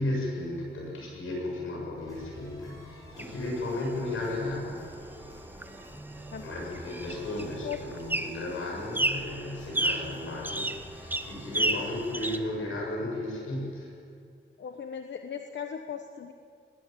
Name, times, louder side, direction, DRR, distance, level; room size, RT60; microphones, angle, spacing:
voice 1, 0.0-4.9 6.4-13.9, left 1 dB, 85° left, -1 dB, 7.3 m, -34 dB
sound 1, 1.9-12.4, equal, 15° left, 7.9 m, -48 dB
sound 2, 3.2-12.4, right 1 dB, 10° right, 0.7 m, -34 dB
voice 2, 14.6-16.3, left 8 dB, 60° left, 6 dB, 1.0 m, -37 dB
21.0 x 16.5 x 9.2 m, 2.2 s
wide cardioid pair, 180°, 21 cm